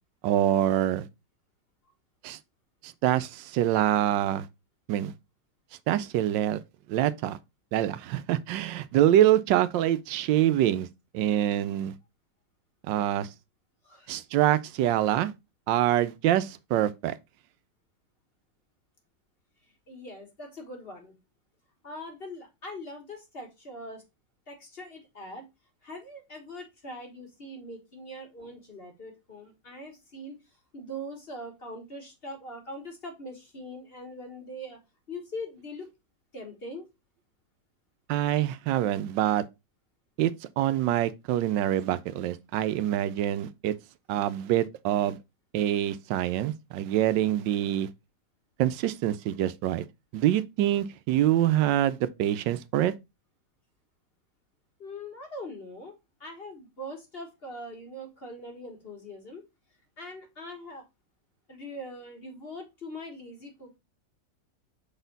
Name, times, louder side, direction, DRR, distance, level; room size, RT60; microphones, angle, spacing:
voice 1, 0.2-1.1 2.2-2.4 2.8-4.5 4.9-5.1 5.9-6.6 6.9-7.4 7.7-10.9 11.1-11.9 12.9-13.3 14.1-15.3 15.7-17.1 38.1-39.4 40.2-40.3 40.6-43.7 44.1-45.2 45.5-47.9 48.6-49.8 50.1-52.9, right 12 dB, 85° right, 1.3 m, -25 dB
voice 2, 19.9-21.2 21.8-24.0 24.5-25.5 25.8-30.4 30.7-34.8 35.1-35.9 36.3-36.9 54.8-55.9 56.2-59.4 60.0-60.8 61.5-63.8, left 1 dB, 35° left, 1.5 m, -42 dB
6.1 x 4.1 x 3.9 m
omnidirectional pair, 1.9 m